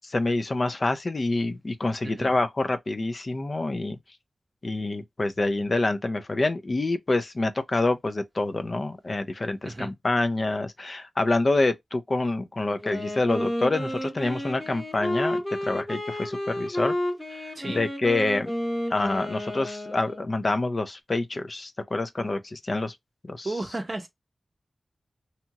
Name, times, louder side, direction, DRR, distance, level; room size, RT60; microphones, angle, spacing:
voice 1, 0.0-4.0 4.6-16.9 17.3-18.5 18.9-22.9 23.2-23.5, left 2 dB, 40° left, 0.4 m, -27 dB
Wind instrument woodwind instrument, 12.8-20.4, left 1 dB, 10° left, 0.8 m, -31 dB
voice 2, 23.4-24.1, right 2 dB, 35° right, 0.7 m, -33 dB
2.8 x 2.3 x 2.8 m
wide cardioid pair, 115°, 0 cm